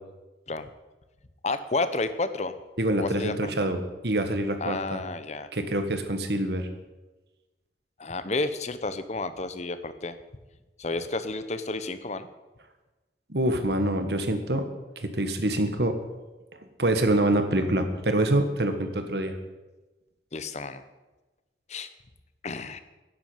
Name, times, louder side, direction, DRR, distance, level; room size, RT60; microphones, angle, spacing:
voice 1, 1.4-2.5 3.0-3.7 4.6-5.5 8.0-10.1 10.8-12.3 20.3-20.8 21.7-21.9 22.4-22.8, left 3 dB, 40° left, 12 dB, 0.8 m, -31 dB
voice 2, 2.8-5.0 5.5-6.7 13.3-14.7 15.0-16.0 16.8-19.3, right 1 dB, 65° right, 7 dB, 1.5 m, -25 dB
11.0 x 8.0 x 9.1 m, 1.1 s
head